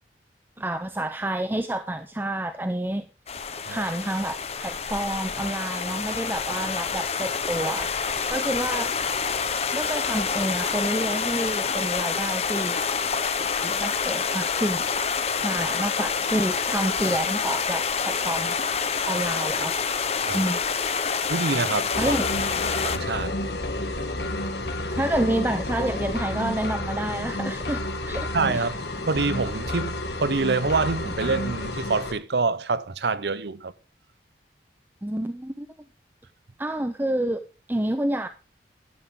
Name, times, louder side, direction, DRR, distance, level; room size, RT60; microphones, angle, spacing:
voice 1, 0.6-3.1 3.7-8.9 9.7-12.8 13.6-14.8 15.3-18.6 19.1-19.7 20.3-20.6 22.0-22.3 25.0-28.7 35.0-35.7 36.6-37.4 37.7-38.3, right 1 dB, 10° right, 0.5 m, -29 dB
sound 1, 3.3-23.0, left 6 dB, 35° left, 0.9 m, -27 dB
voice 2, 21.3-22.0 22.7-23.4 28.3-28.8 29.1-33.7, right 4 dB, 70° right, 0.7 m, -26 dB
sound 2, 21.9-32.1, left 1 dB, 70° left, 1.9 m, -30 dB
11.5 x 10.5 x 3.6 m
head